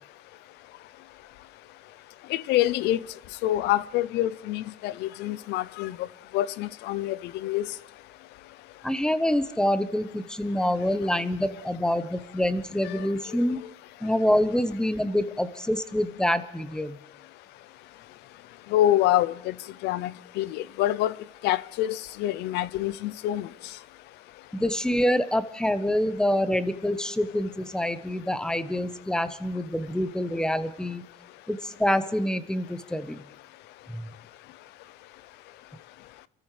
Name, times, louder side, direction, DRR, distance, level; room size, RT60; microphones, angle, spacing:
voice 1, 2.3-3.0 3.4-6.0 6.3-7.7 12.8-13.1 18.7-19.5 19.8-21.1 21.4-23.5, left 13 dB, 85° left, 0.6 m, -26 dB
voice 2, 8.8-13.6 14.0-17.0 24.5-31.0 31.5-33.2 33.9-34.1, left 1 dB, 5° left, 0.9 m, -26 dB
27.0 x 14.0 x 3.3 m
cardioid pair, 110°, 17 cm